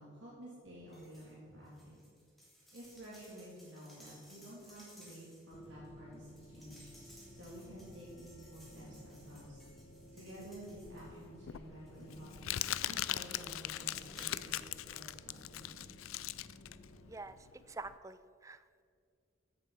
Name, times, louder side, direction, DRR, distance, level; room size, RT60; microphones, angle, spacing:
voice 1, 0.0-2.0 2.7-6.9 7.3-9.6 10.1-12.3 12.8-15.8, right 1 dB, 55° right, -7 dB, 3.0 m, -51 dB
sound 1, 0.9-1.3 1.6-11.4 11.9-14.8 15.1-15.2, equal, ahead, 2.9 m, -61 dB
sound 2, 5.5-17.1, left 1 dB, 30° left, 0.6 m, -56 dB
Crumpling crinkling, 10.9-17.9, left 13 dB, 80° left, 0.4 m, -40 dB
voice 2, 17.7-18.8, right 3 dB, 15° right, 13 dB, 0.3 m, -47 dB
15.0 x 7.1 x 5.7 m, 2.2 s
head